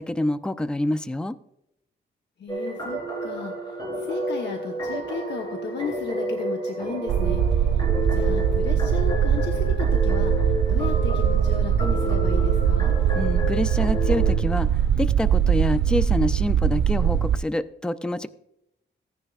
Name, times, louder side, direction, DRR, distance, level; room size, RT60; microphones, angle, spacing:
voice 1, 0.0-1.4 13.2-18.3, left 1 dB, 5° left, 13 dB, 0.3 m, -27 dB
voice 2, 2.4-7.7 8.0-12.9, left 5 dB, 70° left, 3 dB, 1.0 m, -35 dB
sound 1, 2.5-14.4, left 1 dB, 25° left, 3.4 m, -31 dB
sound 2, 7.1-17.4, right 9 dB, 85° right, 0.6 m, -21 dB
15.5 x 9.9 x 2.4 m, 0.80 s
wide cardioid pair, 145°, 19 cm